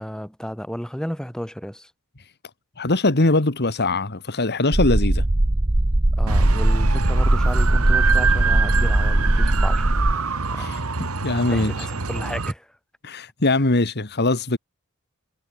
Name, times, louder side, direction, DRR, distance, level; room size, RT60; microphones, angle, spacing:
voice 1, 0.0-1.9 6.2-10.0 10.5-10.9 11.5-12.8, equal, 5° left, 6.5 m, -33 dB
voice 2, 2.8-5.2 10.6-10.8 11.2-11.9 13.0-14.6, left 2 dB, 50° left, 2.0 m, -21 dB
sound 1, 4.7-10.2, right 1 dB, 30° right, 1.0 m, -19 dB
sound 2, 6.3-12.5, right 5 dB, 85° right, 1.8 m, -25 dB
head